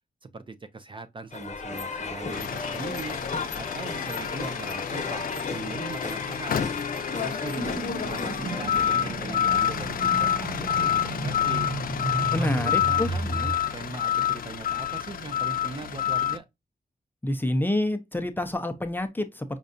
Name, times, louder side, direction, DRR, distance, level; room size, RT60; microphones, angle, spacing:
voice 1, 0.2-3.2 3.5-5.2 5.5-6.6 7.2-7.8 8.0-11.7 12.4-16.4, right 4 dB, 35° right, 0.5 m, -39 dB
sound 1, 1.3-9.4, left 4 dB, 50° left, 0.9 m, -34 dB
sound 2, 2.3-16.4, left 9 dB, 75° left, 0.5 m, -28 dB
sound 3, 7.5-13.5, right 2 dB, 70° right, 0.9 m, -33 dB
voice 2, 12.3-13.1 17.2-19.6, left 1 dB, 15° left, 0.5 m, -27 dB
5.3 x 2.4 x 2.5 m
wide cardioid pair, 145°, 15 cm